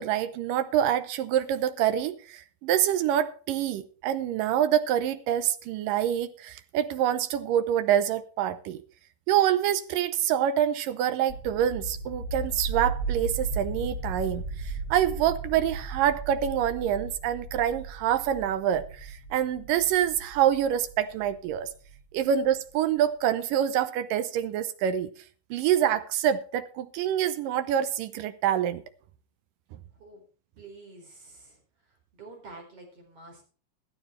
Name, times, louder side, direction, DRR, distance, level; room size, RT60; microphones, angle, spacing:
voice 1, 0.0-8.8 9.3-21.7 22.1-25.1 25.5-28.8, right 10 dB, 75° right, 2.0 m, -26 dB
sound 1, 11.3-22.0, right 3 dB, 25° left, 2.5 m, -36 dB
voice 2, 29.9-30.2 30.6-33.4, right 3 dB, 35° right, 5.2 m, -48 dB
16.5 x 13.0 x 3.2 m
omnidirectional pair, 4.6 m